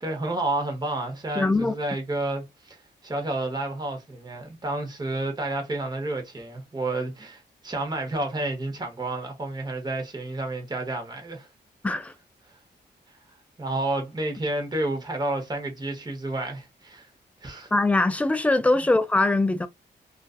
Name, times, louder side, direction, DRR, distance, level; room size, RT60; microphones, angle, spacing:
voice 1, 0.0-2.8 3.0-11.5 13.6-17.1 17.4-17.7 18.7-18.8, right 2 dB, 20° right, 0.9 m, -30 dB
voice 2, 1.4-1.7 11.8-12.1 17.7-19.7, left 2 dB, 5° left, 0.3 m, -22 dB
2.4 x 2.4 x 2.3 m
cardioid pair, 90°, 19 cm